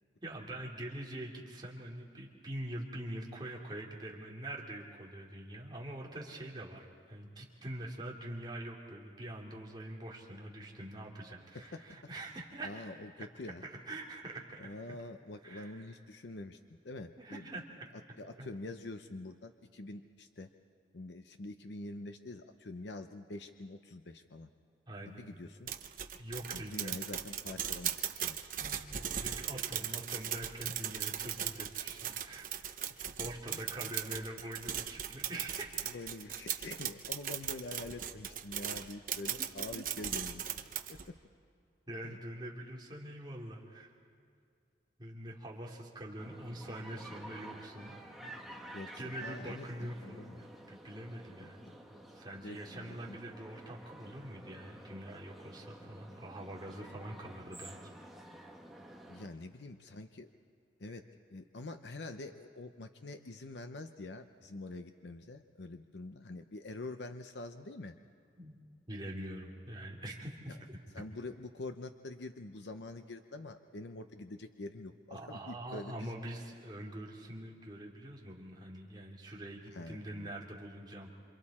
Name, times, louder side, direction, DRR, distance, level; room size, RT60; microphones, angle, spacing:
voice 1, 0.2-12.8 13.6-15.0 15.4-15.8 17.2-17.8 18.4-18.5 24.9-25.3 26.2-26.9 28.6-32.5 33.2-35.9 39.4-39.5 41.9-43.9 45.0-47.9 48.2-48.7 49.0-51.6 51.9-57.8 60.9-61.0 68.4-68.5 68.9-70.8 75.1-81.1, right 1 dB, 25° right, -2 dB, 2.8 m, -44 dB
voice 2, 11.5-12.0 12.6-13.6 14.6-17.5 18.2-20.5 20.9-24.5 25.0-25.7 26.5-28.4 29.8-29.9 33.0-33.1 33.5-34.0 35.9-41.2 42.0-42.2 48.7-50.4 51.4-51.5 52.4-53.2 59.1-60.3 60.8-61.0 61.3-68.0 70.9-76.1 79.7-80.3, left 2 dB, 80° left, 7 dB, 0.7 m, -46 dB
sound 1, 25.7-41.1, right 10 dB, 50° right, 1.0 m, -38 dB
sound 2, 46.2-59.3, right 1 dB, ahead, 1.4 m, -51 dB
27.5 x 27.0 x 4.3 m, 2.3 s
head